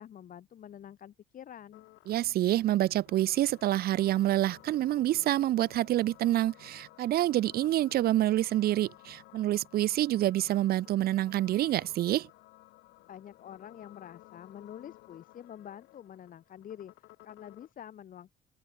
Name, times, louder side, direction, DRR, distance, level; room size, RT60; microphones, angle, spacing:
voice 1, 0.0-1.9 13.1-18.3, left 10 dB, 55° left, 5.7 m, -47 dB
sound 1, 1.7-17.7, left 19 dB, 85° left, 4.1 m, -56 dB
voice 2, 2.1-12.3, right 14 dB, 65° right, 1.0 m, -27 dB
cardioid pair, 110°, 17 cm